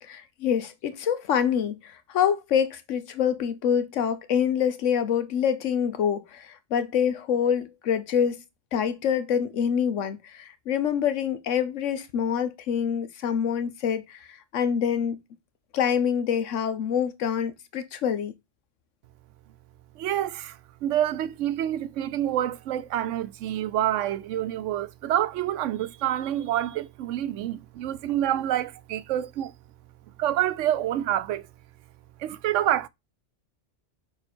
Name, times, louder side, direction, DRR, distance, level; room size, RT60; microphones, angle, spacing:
voice 1, 0.0-8.4 8.7-15.2 15.7-18.3, left 8 dB, 90° left, 1.2 m, -26 dB
voice 2, 20.0-29.5 30.2-31.5 32.2-32.9, right 12 dB, 85° right, 0.9 m, -27 dB
6.8 x 4.2 x 4.4 m
omnidirectional pair, 1.2 m